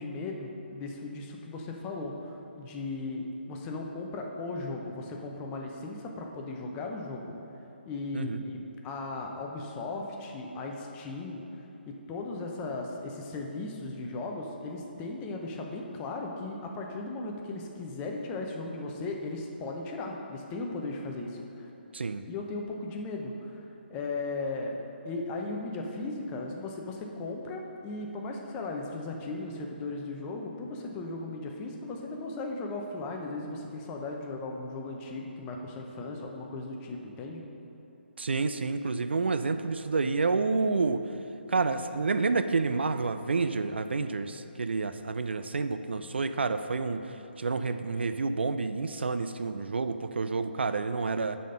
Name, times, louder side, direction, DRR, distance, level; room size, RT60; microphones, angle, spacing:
voice 1, 0.0-7.3 7.9-11.4 11.9-21.7 22.3-23.6 23.9-24.8 25.0-37.4, left 2 dB, 20° left, 1 dB, 0.7 m, -37 dB
voice 2, 21.9-22.2 38.2-41.0 41.5-51.4, right 4 dB, 70° right, 10 dB, 0.4 m, -29 dB
9.1 x 4.2 x 5.5 m, 2.9 s
figure-of-eight pair, 140°, 6 cm